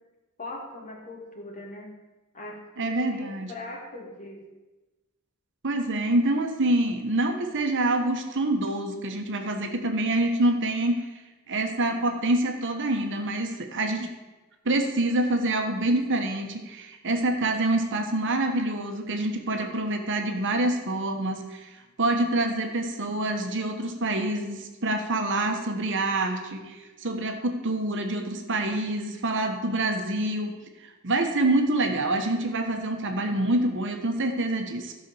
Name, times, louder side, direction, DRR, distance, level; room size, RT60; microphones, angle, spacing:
voice 1, 0.4-1.9 2.3-4.4, left 2 dB, 35° left, 0 dB, 2.1 m, -40 dB
voice 2, 2.8-3.5 5.6-11.0 11.5-14.1 14.6-21.7 22.0-30.5 31.0-34.9, right 2 dB, 60° right, 4 dB, 1.3 m, -26 dB
12.5 x 5.5 x 7.0 m, 1.1 s
head